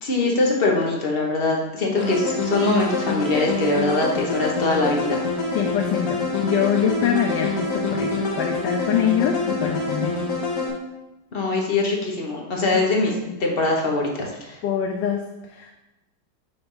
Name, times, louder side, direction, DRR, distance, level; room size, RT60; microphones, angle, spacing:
voice 1, 0.0-5.2 11.3-13.1 13.4-14.6, left 2 dB, 40° left, -1 dB, 1.0 m, -22 dB
sound 1, 2.0-10.7, left 3 dB, 55° left, 1.5 m, -26 dB
voice 2, 5.5-10.1 14.6-15.2 15.6-15.7, left 8 dB, 80° left, 2 dB, 1.2 m, -24 dB
5.5 x 3.4 x 5.4 m, 1.0 s
omnidirectional pair, 1.9 m